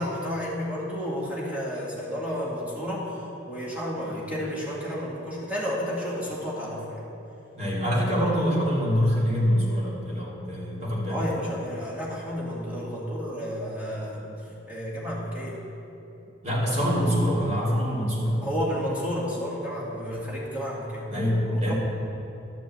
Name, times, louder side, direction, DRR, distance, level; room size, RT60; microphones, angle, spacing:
voice 1, 0.0-7.0 8.1-8.3 11.1-14.4 14.7-15.6 18.4-21.1 21.5-21.7, equal, 10° right, -6 dB, 2.4 m, -31 dB
voice 2, 7.5-11.3 16.4-18.4 21.1-21.7, equal, 35° right, -6 dB, 2.6 m, -25 dB
12.0 x 5.3 x 7.7 m, 2.9 s
head